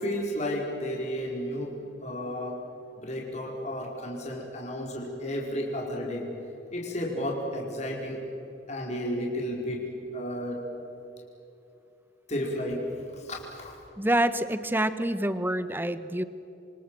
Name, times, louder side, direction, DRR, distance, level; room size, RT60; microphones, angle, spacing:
voice 1, 0.0-1.7 2.0-2.6 3.0-6.3 6.7-8.2 8.7-10.9 12.3-13.7, equal, 40° left, -1 dB, 4.7 m, -32 dB
voice 2, 14.0-16.2, right 1 dB, 10° right, 12 dB, 1.1 m, -27 dB
28.0 x 25.5 x 7.7 m, 2.8 s
head